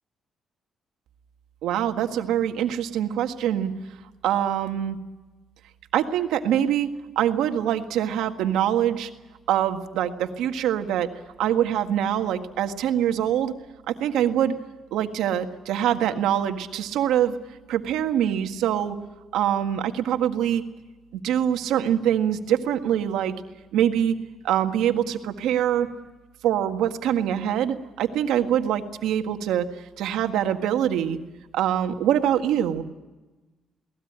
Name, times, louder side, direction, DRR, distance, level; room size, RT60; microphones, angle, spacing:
voice 1, 1.6-3.7 4.2-5.0 5.9-6.9 7.2-9.1 9.5-11.1 11.4-13.5 13.9-14.5 14.9-17.3 17.7-19.0 19.3-20.6 21.1-23.4 23.7-24.2 24.4-25.9 26.4-29.7 30.0-31.2 31.5-32.8, right 10 dB, 90° right, 6 dB, 1.8 m, -24 dB
22.5 x 18.5 x 8.8 m, 1.2 s
cardioid pair, 90°, 0 cm